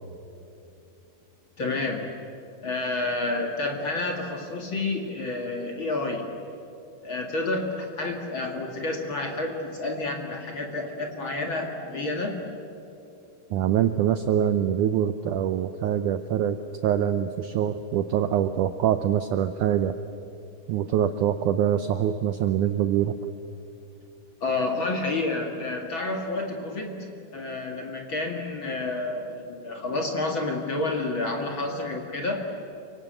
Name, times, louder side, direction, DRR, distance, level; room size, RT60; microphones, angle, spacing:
voice 1, 1.6-2.1 2.6-6.3 7.0-12.4 24.4-27.1 27.3-32.5, left 2 dB, 40° left, 2 dB, 2.3 m, -29 dB
voice 2, 13.5-16.6 16.8-19.9 20.7-23.2, right 10 dB, 80° right, 10 dB, 1.8 m, -24 dB
29.0 x 24.5 x 7.9 m, 2.8 s
omnidirectional pair, 4.4 m